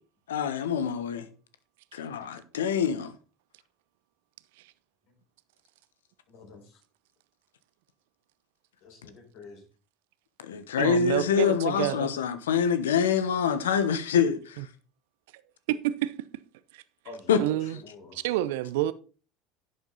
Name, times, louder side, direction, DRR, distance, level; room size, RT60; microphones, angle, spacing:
voice 1, 0.3-1.3 1.9-3.1 10.4-14.6 17.3-17.4, left 7 dB, 80° left, 1.1 m, -25 dB
voice 2, 6.3-6.8 8.8-9.6 17.0-18.2, left 3 dB, 60° left, 5.3 m, -48 dB
voice 3, 10.8-12.1 14.6-14.7 15.7-16.1 16.7-16.8 17.4-17.8 18.1-18.9, right 14 dB, 70° right, 0.6 m, -28 dB
11.0 x 7.9 x 4.0 m
hypercardioid pair, 70°, 0 cm